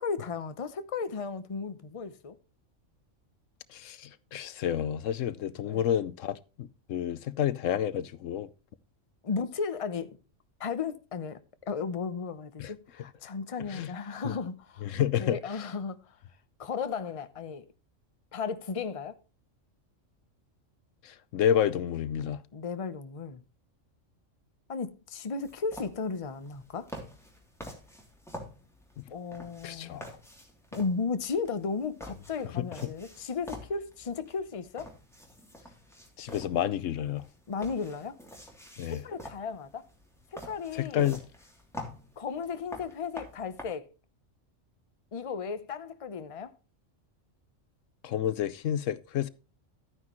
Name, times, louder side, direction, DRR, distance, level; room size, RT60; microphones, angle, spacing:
voice 1, 0.0-2.4 5.6-5.9 9.2-10.2 10.6-11.4 11.7-14.9 15.2-16.0 16.6-17.6 18.3-19.2 22.5-23.4 24.7-26.9 29.1-30.1 30.7-34.9 37.5-38.2 38.9-39.8 40.3-41.1 42.2-43.9 45.1-46.5, left 5 dB, 30° left, 0.8 m, -35 dB
voice 2, 3.7-8.5 12.6-12.7 13.7-13.9 14.2-14.3 14.8-15.4 21.0-22.4 29.6-30.0 32.6-32.7 36.2-37.3 38.8-39.0 40.7-41.2 48.0-49.3, left 10 dB, 80° left, 1.0 m, -30 dB
sound 1, 25.4-43.6, left 1 dB, ahead, 2.9 m, -47 dB
13.0 x 9.5 x 3.0 m
omnidirectional pair, 1.3 m